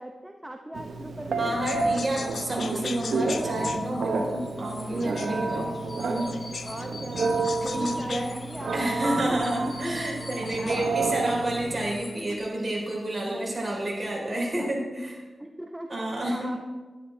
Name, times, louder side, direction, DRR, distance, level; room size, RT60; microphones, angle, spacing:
voice 1, 0.0-1.6 1.9-2.3 5.8-6.3 6.6-9.7 10.1-10.3 10.6-11.3 13.2-13.8 14.6-14.7 15.4-16.6, right 1 dB, 10° right, 3 dB, 0.8 m, -39 dB
Telephone, 0.7-11.9, right 3 dB, 90° right, 1.1 m, -30 dB
voice 2, 1.4-5.7 6.0-6.3 7.7-8.4 8.7-15.2 15.9-16.6, right 1 dB, 30° right, -2 dB, 3.9 m, -30 dB
sound 1, 1.7-6.9 7.2-12.5, left 5 dB, 70° left, 0.5 m, -41 dB
sound 2, 4.7-14.2, left 2 dB, 30° left, 2.4 m, -48 dB
11.5 x 11.0 x 3.3 m, 1.3 s
cardioid pair, 70°, 0 cm